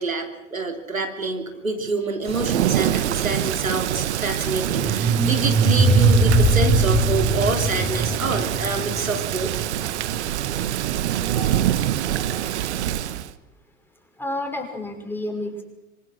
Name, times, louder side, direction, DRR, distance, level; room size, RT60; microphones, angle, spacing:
voice 1, 0.0-9.5, right 3 dB, 85° right, 5 dB, 3.4 m, -27 dB
Thunder / Rain, 2.2-13.3, right 12 dB, 55° right, 1.3 m, -25 dB
sound 1, 4.7-9.7, right 3 dB, 15° right, 5.4 m, -20 dB
voice 2, 11.3-12.5 14.2-15.6, left 2 dB, 5° left, 3 dB, 5.6 m, -32 dB
26.0 x 25.5 x 6.4 m, 1.1 s
figure-of-eight pair, 100°, 40 cm